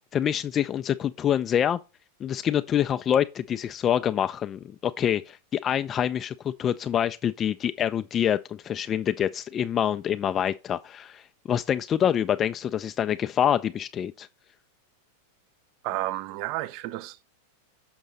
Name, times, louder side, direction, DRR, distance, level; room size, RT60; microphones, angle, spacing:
voice 1, 0.1-1.8 2.2-11.2 11.5-14.3, left 9 dB, 25° left, 0.3 m, -26 dB
voice 2, 15.8-17.3, right 15 dB, 45° right, 0.5 m, -31 dB
7.2 x 5.4 x 3.9 m
figure-of-eight pair, 90°, 0 cm